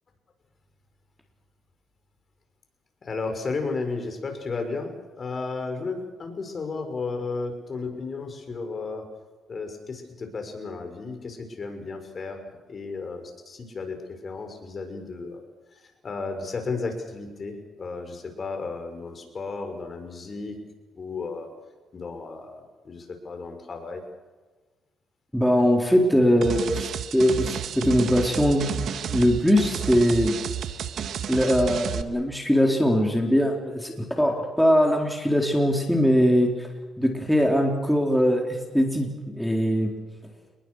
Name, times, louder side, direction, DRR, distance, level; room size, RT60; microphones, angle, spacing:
voice 1, 3.0-4.9 5.2-9.1 9.5-12.4 12.7-14.0 14.2-15.5 16.0-20.6 21.0-21.5 21.9-24.0, left 4 dB, 40° left, 5 dB, 6.3 m, -33 dB
voice 2, 25.3-28.8 29.1-30.3 31.3-36.7 37.0-38.4 38.7-39.1 39.3-39.9, equal, ahead, 1 dB, 4.3 m, -21 dB
sound 1, 26.4-32.0, right 8 dB, 65° right, 1.8 m, -31 dB
29.5 x 21.5 x 6.5 m, 1.3 s
cardioid pair, 90°, 0 cm